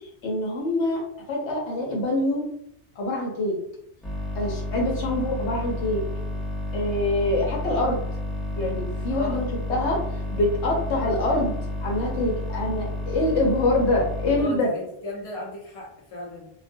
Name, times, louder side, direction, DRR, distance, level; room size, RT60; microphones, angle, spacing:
voice 1, 0.2-1.0 1.3-2.4 3.0-3.6 4.3-6.0 6.7-8.0 8.6-10.0 10.3-11.5 11.8-14.7, left 2 dB, 75° left, -2 dB, 0.9 m, -25 dB
sound 1, 4.0-14.4, left 1 dB, ahead, 0.5 m, -31 dB
voice 2, 9.1-9.4 14.4-16.5, left 1 dB, 35° left, -4 dB, 0.7 m, -36 dB
2.3 x 2.1 x 2.5 m, 0.73 s
omnidirectional pair, 1.2 m